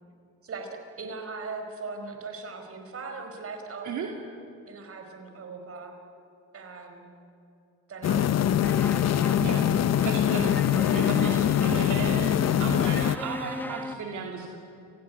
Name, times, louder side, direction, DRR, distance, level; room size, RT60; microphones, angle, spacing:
voice 1, 0.4-3.9 4.6-6.0 6.5-7.1 7.9-8.7, right 4 dB, 50° right, 5 dB, 5.1 m, -39 dB
sound 1, 8.0-13.2, left 10 dB, 60° left, 0.9 m, -23 dB
sound 2, 8.6-13.9, left 1 dB, 5° left, 1.2 m, -37 dB
voice 2, 10.0-14.5, right 5 dB, 75° right, 1 dB, 2.8 m, -35 dB
29.0 x 17.5 x 9.7 m, 2.7 s
cardioid pair, 90°, 30 cm